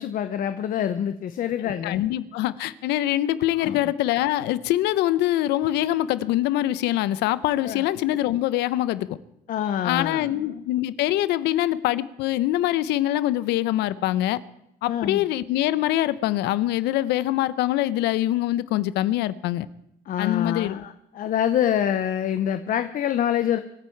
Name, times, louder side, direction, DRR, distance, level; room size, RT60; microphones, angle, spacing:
voice 1, 0.0-2.0 3.6-3.8 7.6-7.8 9.5-10.6 14.9-15.3 20.1-23.6, left 10 dB, 55° left, 0.8 m, -26 dB
voice 2, 1.6-9.1 9.8-14.4 14.8-19.7 20.2-20.8, left 14 dB, 90° left, 0.7 m, -24 dB
24.5 x 9.9 x 4.6 m
cardioid pair, 110°, 17 cm